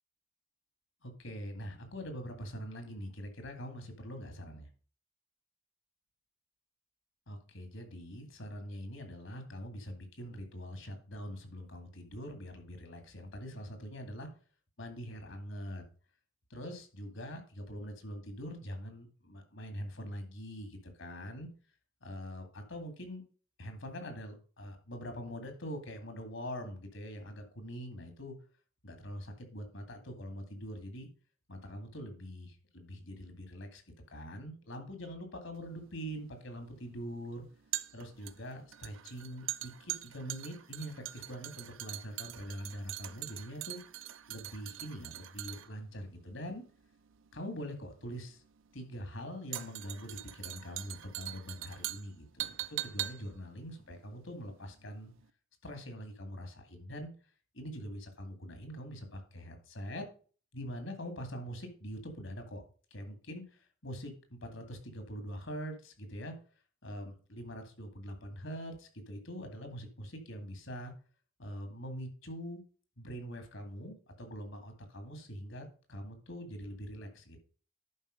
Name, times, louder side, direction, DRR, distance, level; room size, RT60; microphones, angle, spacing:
voice 1, 1.0-4.7 7.3-14.3 14.8-15.8 16.5-21.5 22.0-23.2 23.6-28.4 28.8-31.1 31.5-33.8 34.1-37.4 37.9-43.8 44.3-46.6 47.3-48.4 48.7-55.1 55.6-57.1 57.5-60.1 60.5-62.6 62.9-66.3 66.8-70.9 71.4-72.6 73.0-77.4, equal, 65° left, 6 dB, 2.2 m, -43 dB
sound 1, 35.6-54.8 55.1-55.2, right 14 dB, 70° right, 0.6 m, -43 dB
11.0 x 4.7 x 5.1 m, 0.39 s
head